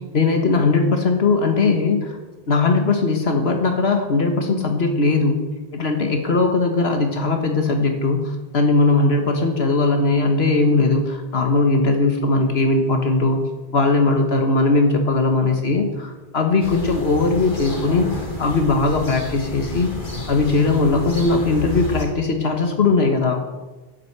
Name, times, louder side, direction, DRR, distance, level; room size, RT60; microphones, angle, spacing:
voice 1, 0.1-2.2 2.5-5.4 5.7-13.4 13.7-18.1 18.4-19.9 20.3-23.4, left 3 dB, 80° left, 4 dB, 1.7 m, -19 dB
sound 1, 16.6-22.0, left 2 dB, 50° left, 3.3 m, -30 dB
12.0 x 9.5 x 8.1 m, 1.2 s
omnidirectional pair, 1.0 m